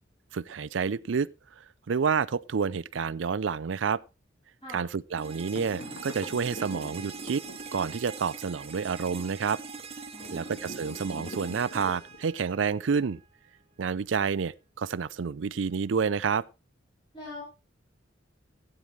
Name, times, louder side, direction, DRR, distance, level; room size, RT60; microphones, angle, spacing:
voice 1, 0.3-1.3 1.6-4.0 4.7-7.4 7.7-9.6 10.3-13.2 13.8-16.4, right 6 dB, 75° right, 0.5 m, -29 dB
sound 1, 5.2-13.2, right 4 dB, 35° right, 1.4 m, -42 dB
sound 2, 5.6-8.1 10.2-12.5, equal, 65° left, 2.0 m, -44 dB
voice 2, 10.1-10.5 17.1-17.4, left 2 dB, 25° left, 7.2 m, -42 dB
15.5 x 8.9 x 3.2 m
head